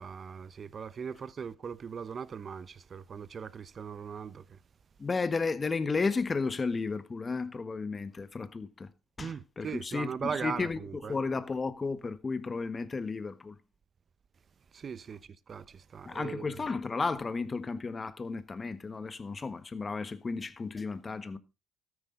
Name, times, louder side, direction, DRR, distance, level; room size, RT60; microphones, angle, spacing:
voice 1, 0.0-4.6 9.2-11.2 14.7-16.5, right 6 dB, 40° right, 1.0 m, -39 dB
voice 2, 5.0-8.9 9.2-13.5 16.1-21.4, left 4 dB, 30° left, 1.4 m, -33 dB
13.5 x 9.9 x 3.9 m
supercardioid pair, 80°, 0 cm